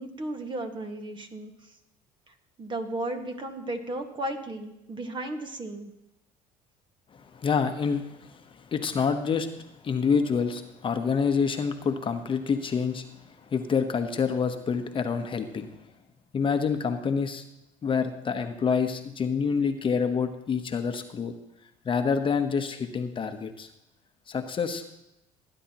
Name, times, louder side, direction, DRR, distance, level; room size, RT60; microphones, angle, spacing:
voice 1, 0.0-1.7 2.3-5.9, right 1 dB, 30° right, 5 dB, 1.7 m, -35 dB
voice 2, 7.2-15.7 16.3-17.4 17.8-21.3 21.8-23.7 24.3-24.8, left 6 dB, 35° left, 7 dB, 1.0 m, -27 dB
18.5 x 9.9 x 3.0 m, 0.87 s
supercardioid pair, 95°, 15 cm